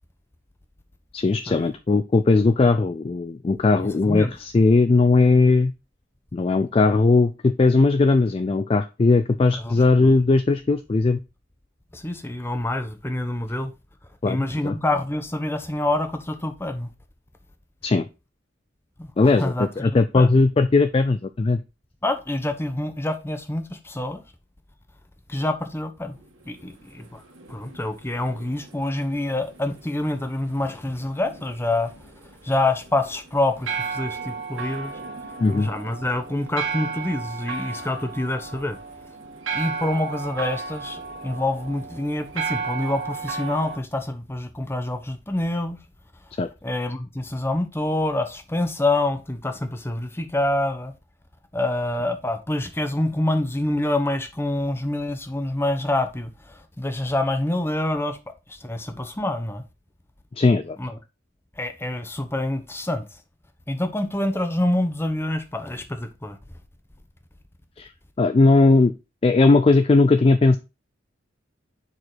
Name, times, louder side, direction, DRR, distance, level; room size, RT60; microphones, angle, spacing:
voice 1, 1.1-5.7 6.3-11.2 14.2-14.8 17.8-18.1 19.2-21.6 35.4-35.7 46.4-46.5 60.4-60.8 67.8-67.9 68.2-68.9 69.2-70.6, left 3 dB, 30° left, 0.3 m, -18 dB
voice 2, 3.8-4.3 9.5-10.1 11.9-13.7 14.3-16.9 19.0-20.4 22.0-24.2 25.3-26.2 26.5-27.2 27.5-31.9 32.4-34.9 35.5-38.8 39.5-45.8 46.6-50.9 51.5-58.2 58.5-59.6 60.8-61.0 61.6-63.1 63.7-66.4, left 1 dB, 10° left, 0.8 m, -26 dB
sound 1, 26.1-43.8, right 5 dB, 75° right, 1.6 m, -35 dB
6.6 x 4.8 x 4.0 m
head